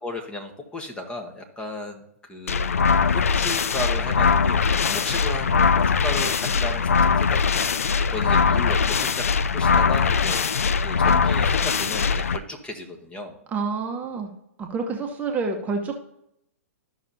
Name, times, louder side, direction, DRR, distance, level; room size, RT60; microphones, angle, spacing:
voice 1, 0.0-2.8 3.1-9.2 9.5-13.4, left 2 dB, 10° left, 3 dB, 1.3 m, -35 dB
sound 1, 2.5-12.4, left 5 dB, 75° left, 0.4 m, -21 dB
voice 2, 13.5-14.3 14.6-16.0, right 4 dB, 20° right, 2 dB, 1.0 m, -28 dB
13.5 x 5.9 x 2.8 m, 0.79 s
figure-of-eight pair, 110°, 8 cm